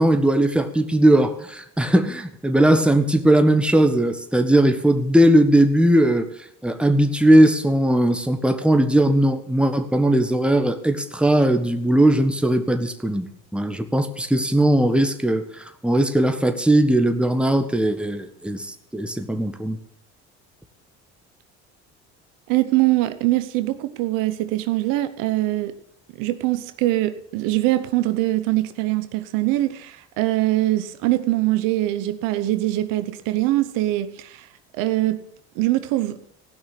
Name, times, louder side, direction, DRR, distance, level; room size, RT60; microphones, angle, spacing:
voice 1, 0.0-6.3 6.6-13.2 13.5-19.8, right 1 dB, 5° right, 1.4 m, -19 dB
voice 2, 22.5-25.8 26.2-34.5 34.7-35.3 35.5-36.2, right 16 dB, 75° right, 0.9 m, -22 dB
16.0 x 6.0 x 8.4 m
supercardioid pair, 80°, 32 cm